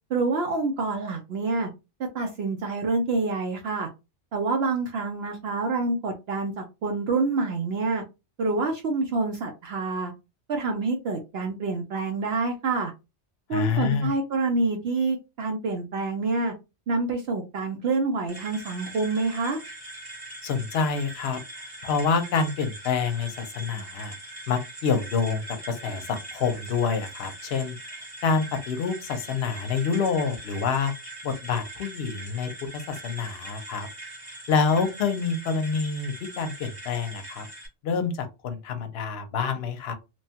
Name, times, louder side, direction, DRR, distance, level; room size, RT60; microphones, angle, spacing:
voice 1, 0.1-1.7 2.1-3.9 4.3-8.0 8.4-10.1 10.5-12.9 13.5-16.5 16.9-19.6, right 3 dB, 65° right, 0.8 m, -27 dB
voice 2, 13.5-14.1 20.4-21.4 21.8-24.1 24.5-27.8 28.2-30.9 31.2-33.9 34.5-37.5 37.8-39.9, left 5 dB, 60° left, 0.8 m, -27 dB
sound 1, 18.3-37.7, right 2 dB, 20° right, 0.9 m, -42 dB
3.0 x 2.2 x 2.7 m
omnidirectional pair, 1.3 m